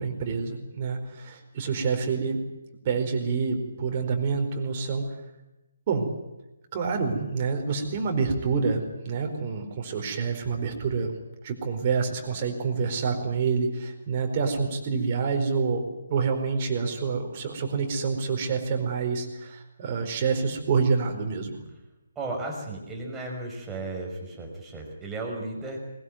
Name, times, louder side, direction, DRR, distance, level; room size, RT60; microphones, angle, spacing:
voice 1, 0.0-2.4 2.8-5.0 5.9-6.1 6.7-11.1 11.4-15.8 16.1-21.6, right 5 dB, 30° right, 4 dB, 4.5 m, -27 dB
voice 2, 22.2-25.8, right 2 dB, 10° right, 0 dB, 5.7 m, -35 dB
21.0 x 20.5 x 9.3 m, 0.99 s
figure-of-eight pair, 140°, 0 cm